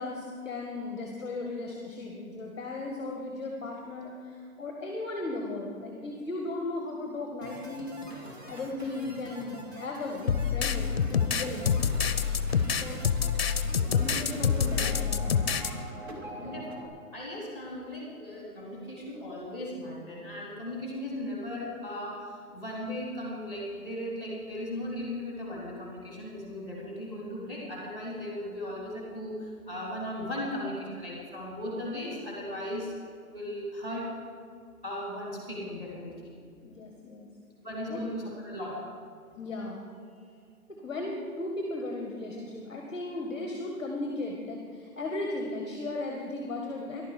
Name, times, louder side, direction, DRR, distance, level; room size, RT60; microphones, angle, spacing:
voice 1, 0.0-7.9 8.5-11.7 12.6-13.1 13.9-15.5 16.4-16.6 36.4-37.3 37.9-38.0 39.3-39.9 40.8-47.0, left 2 dB, 20° left, 1 dB, 0.9 m, -36 dB
sound 1, 7.4-16.9, right 1 dB, 45° right, 2.3 m, -44 dB
sound 2, 10.3-15.7, left 6 dB, 45° left, 0.6 m, -26 dB
voice 2, 16.4-32.9 33.3-34.1 34.8-36.3 37.6-38.8, left 1 dB, 15° right, -4 dB, 2.8 m, -37 dB
14.0 x 11.5 x 4.9 m, 2.3 s
hypercardioid pair, 170°, 45 cm